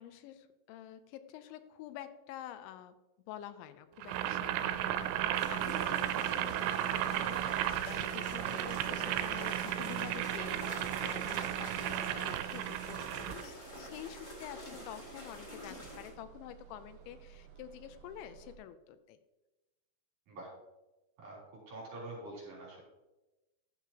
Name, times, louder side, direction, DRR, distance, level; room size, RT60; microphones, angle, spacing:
voice 1, 0.0-3.0 3.3-19.2, left 11 dB, 90° left, 12 dB, 2.9 m, -48 dB
Boiling, 4.0-13.4, right 12 dB, 90° right, 2.9 m, -34 dB
sound 1, 4.6-18.6, right 8 dB, 65° right, 2.5 m, -56 dB
sound 2, 5.3-16.1, equal, 25° left, 1.4 m, -47 dB
voice 2, 21.7-22.8, right 2 dB, 45° right, -5 dB, 4.5 m, -45 dB
11.5 x 7.6 x 2.9 m, 1.0 s
omnidirectional pair, 5.2 m